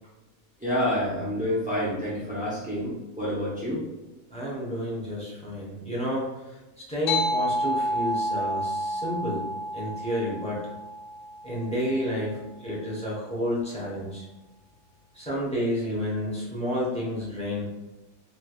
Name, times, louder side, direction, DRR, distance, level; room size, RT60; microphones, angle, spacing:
voice 1, 0.6-3.8, equal, 15° right, -8 dB, 0.3 m, -28 dB
voice 2, 4.3-10.7 11.4-14.3 15.1-17.7, equal, 5° left, -6 dB, 0.7 m, -30 dB
sound 1, 7.1-12.0, equal, 85° left, 1.1 m, -30 dB
3.2 x 3.0 x 2.3 m, 1.0 s
omnidirectional pair, 1.5 m